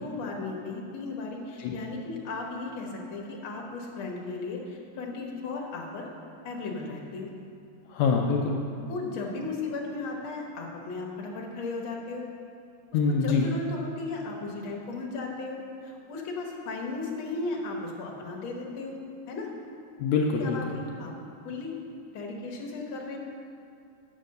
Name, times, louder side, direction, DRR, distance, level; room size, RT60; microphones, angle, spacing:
voice 1, 0.0-6.1 6.4-7.3 8.8-12.2 13.1-19.0 19.3-19.5 20.4-21.1 21.4-21.7 22.1-23.2, left 3 dB, 55° left, -1 dB, 1.7 m, -35 dB
voice 2, 7.9-8.6 12.9-13.5 20.0-20.7, left 5 dB, 80° left, 0 dB, 1.9 m, -25 dB
8.1 x 6.4 x 6.5 m, 2.5 s
omnidirectional pair, 3.4 m